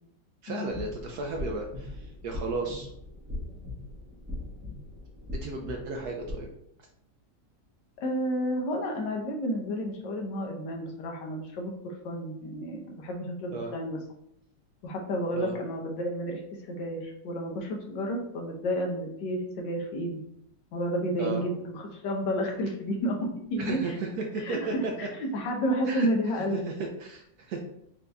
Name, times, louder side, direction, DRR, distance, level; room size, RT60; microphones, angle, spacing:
voice 1, 0.4-2.9 5.4-6.5 13.5-13.7 15.3-15.6 21.2-21.4 23.6-24.9 25.9-26.1 26.5-27.6, right 3 dB, 70° right, 1 dB, 1.0 m, -34 dB
sound 1, 0.7-6.3, left 1 dB, 10° right, 0.8 m, -40 dB
voice 2, 8.0-14.0 14.8-16.4 16.7-20.1 20.7-24.0 24.4-26.6, equal, 75° left, 1 dB, 1.4 m, -31 dB
4.6 x 2.6 x 3.3 m, 0.73 s
omnidirectional pair, 2.0 m